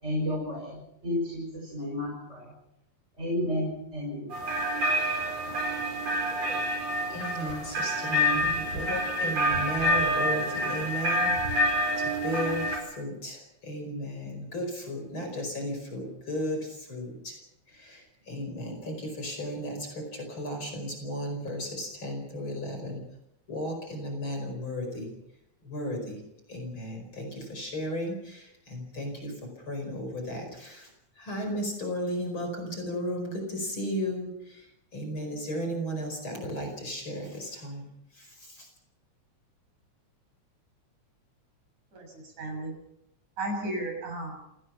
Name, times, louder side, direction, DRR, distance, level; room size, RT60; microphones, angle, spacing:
voice 1, 0.0-2.5 3.2-4.3, left 1 dB, 20° right, -2 dB, 6.7 m, -32 dB
sound 1, 4.3-12.8, equal, 60° right, 6.6 m, -27 dB
voice 2, 7.1-17.4 17.7-23.0 23.5-25.1 25.6-26.2 26.5-30.9 31.2-37.9 38.1-38.7, equal, 40° left, 4 dB, 5.7 m, -35 dB
voice 3, 41.9-42.7 43.4-44.4, right 1 dB, 85° right, 2 dB, 8.6 m, -34 dB
27.5 x 18.5 x 5.9 m, 0.80 s
omnidirectional pair, 3.3 m